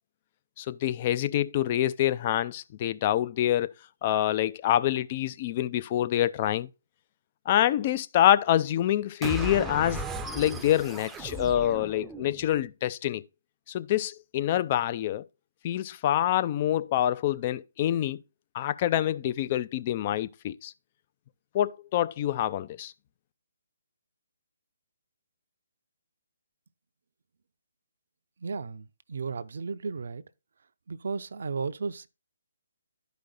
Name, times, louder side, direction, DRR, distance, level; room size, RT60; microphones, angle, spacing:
voice 1, 0.6-3.7 4.0-6.7 7.5-10.0 10.3-13.2 13.7-15.2 15.6-18.2 18.5-20.7 21.5-22.9, left 12 dB, 35° left, 0.5 m, -26 dB
sound 1, 9.2-12.6, right 2 dB, 10° right, 0.7 m, -36 dB
voice 2, 28.4-30.2 30.9-32.1, right 5 dB, 65° right, 0.6 m, -34 dB
11.5 x 5.1 x 3.9 m
figure-of-eight pair, 145°, 0 cm